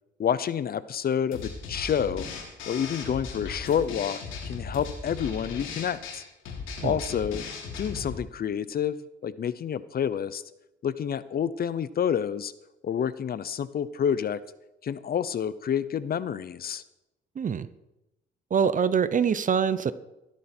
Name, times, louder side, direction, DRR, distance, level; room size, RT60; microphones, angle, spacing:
voice 1, 0.2-2.3 2.7-6.2 6.8-7.4 7.8-10.4 10.8-12.5 12.8-14.4 14.8-16.8, left 8 dB, 50° left, 16 dB, 0.7 m, -28 dB
sound 1, 1.3-8.2, left 5 dB, 90° left, 3.0 m, -37 dB
voice 2, 17.4-17.7 18.5-19.9, right 7 dB, 40° right, 16 dB, 0.8 m, -24 dB
14.5 x 13.0 x 4.5 m, 0.95 s
cardioid pair, 90°, 20 cm